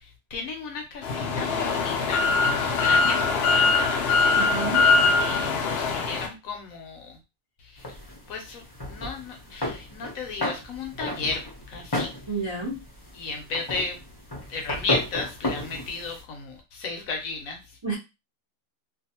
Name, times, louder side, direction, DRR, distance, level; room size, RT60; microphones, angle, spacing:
voice 1, 0.0-4.3 5.2-7.2 7.6-8.0 8.3-12.1 13.1-14.0 14.5-17.6, left 3 dB, 65° left, 3 dB, 1.0 m, -34 dB
sound 1, 1.0-6.3, left 4 dB, 85° left, 0.5 m, -22 dB
voice 2, 4.3-4.9 12.3-12.8 17.8-17.9, right 3 dB, 40° right, -5 dB, 0.4 m, -30 dB
sound 2, 7.8-16.2, left 1 dB, 25° left, 0.5 m, -34 dB
2.6 x 2.3 x 2.8 m, 0.25 s
omnidirectional pair, 1.7 m